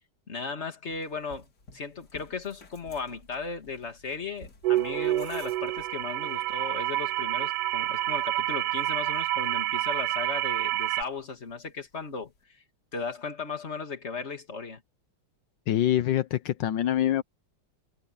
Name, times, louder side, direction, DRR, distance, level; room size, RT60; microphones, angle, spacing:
voice 1, 0.3-1.5 1.7-12.6 12.9-14.8, left 4 dB, 35° left, 2.4 m, -36 dB
sound 1, 0.9-12.4, left 3 dB, 60° left, 3.2 m, -56 dB
sound 2, 4.6-11.0, right 16 dB, 75° right, 1.1 m, -28 dB
voice 2, 15.7-17.2, left 12 dB, 80° left, 1.5 m, -25 dB
omnidirectional pair, 2.0 m